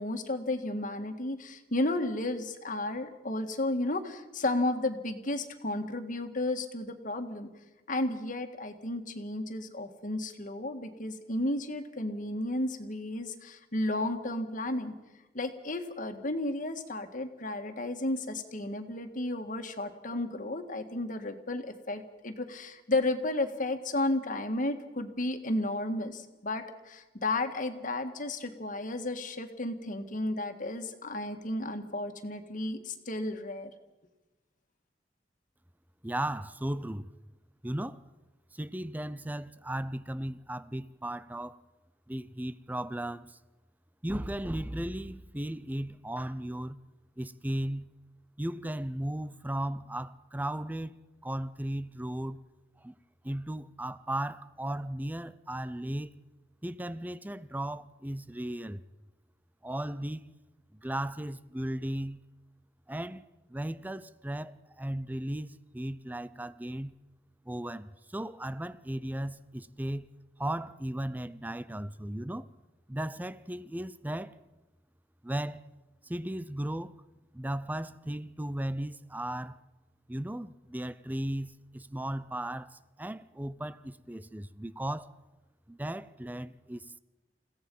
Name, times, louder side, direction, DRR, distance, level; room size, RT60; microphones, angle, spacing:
voice 1, 0.0-7.5 7.9-14.9 15.3-33.7, left 2 dB, 50° left, 1.9 m, -33 dB
voice 2, 36.0-37.1 37.6-38.0 38.5-41.6 42.1-43.4 44.0-46.8 47.2-47.9 48.4-51.0 51.2-52.4 52.8-52.9 53.2-56.2 56.6-58.8 59.6-60.3 60.7-62.2 62.9-63.2 63.5-67.0 67.5-70.1 70.4-72.5 72.9-74.4 75.2-75.6 76.0-76.9 77.3-79.6 80.1-85.1 85.7-87.0, right 1 dB, 10° right, 0.6 m, -36 dB
29.0 x 16.5 x 5.5 m
head